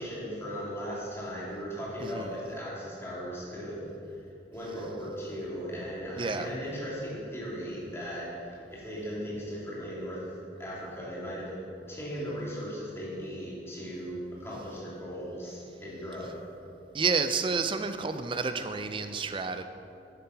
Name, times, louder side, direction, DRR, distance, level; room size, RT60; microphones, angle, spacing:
voice 1, 0.0-3.9 4.5-10.3 10.6-11.6 11.9-16.3, equal, 15° left, -7 dB, 2.7 m, -37 dB
voice 2, 2.0-2.3 6.2-6.5 16.9-19.6, right 4 dB, 30° right, 9 dB, 0.4 m, -30 dB
9.8 x 7.4 x 5.7 m, 2.6 s
head